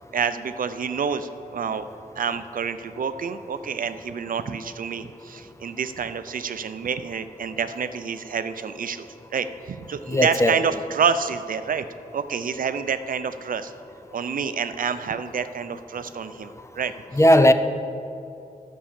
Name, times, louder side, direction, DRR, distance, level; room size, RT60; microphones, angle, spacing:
voice 1, 0.1-1.9 2.2-11.8 12.1-13.7 14.1-16.9, right 6 dB, 65° right, 11 dB, 0.5 m, -28 dB
voice 2, 10.1-10.5 17.2-17.5, left 1 dB, 20° left, 9 dB, 0.5 m, -16 dB
11.5 x 5.5 x 7.3 m, 2.8 s
wide cardioid pair, 105°, 15 cm